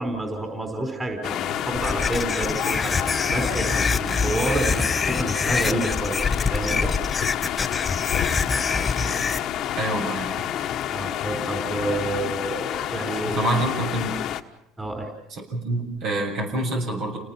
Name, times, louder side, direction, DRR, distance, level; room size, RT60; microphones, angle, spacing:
voice 1, 0.0-3.0 3.3-6.2 6.5-7.0 10.9-13.4 14.8-15.1, right 2 dB, 15° right, 4 dB, 4.8 m, -29 dB
sound 1, 1.2-14.4, left 11 dB, 55° left, 1.3 m, -29 dB
sound 2, 1.7-9.4, left 4 dB, 25° left, 0.8 m, -25 dB
voice 2, 9.8-10.5 13.2-14.2 15.3-17.2, right 1 dB, 60° right, 3 dB, 7.5 m, -27 dB
30.0 x 19.0 x 6.0 m, 0.88 s
supercardioid pair, 100°, 0 cm